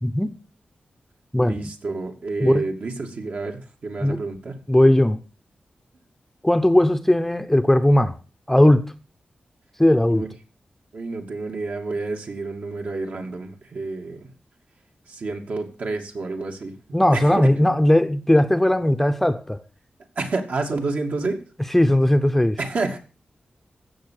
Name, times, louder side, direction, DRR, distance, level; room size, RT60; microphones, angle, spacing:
voice 1, 0.0-0.4 1.3-1.6 2.4-2.6 4.0-4.2 4.7-5.2 6.4-8.1 8.5-8.9 9.8-10.2 16.9-19.6 21.7-22.6, left 1 dB, 5° left, 0.7 m, -18 dB
voice 2, 1.5-4.5 10.1-10.3 10.9-14.3 15.1-17.5 20.2-21.4 22.6-23.0, right 3 dB, 65° right, 2.6 m, -29 dB
15.5 x 7.2 x 6.5 m
wide cardioid pair, 130°, 3 cm